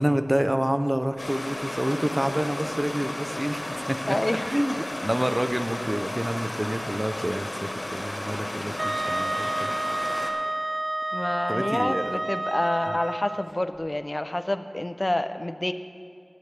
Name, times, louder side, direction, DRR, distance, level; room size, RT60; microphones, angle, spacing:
voice 1, 0.0-4.0 4.5-10.1 11.5-12.2, equal, 25° right, 9 dB, 0.6 m, -28 dB
Stream, 1.2-10.3, left 1 dB, 70° left, 1.3 m, -33 dB
voice 2, 4.1-4.5 11.1-15.7, left 1 dB, 40° left, 9 dB, 0.5 m, -28 dB
Wind instrument woodwind instrument, 8.8-13.5, right 1 dB, 75° right, 0.4 m, -29 dB
21.0 x 8.3 x 3.4 m, 2.2 s
wide cardioid pair, 45°, 0 cm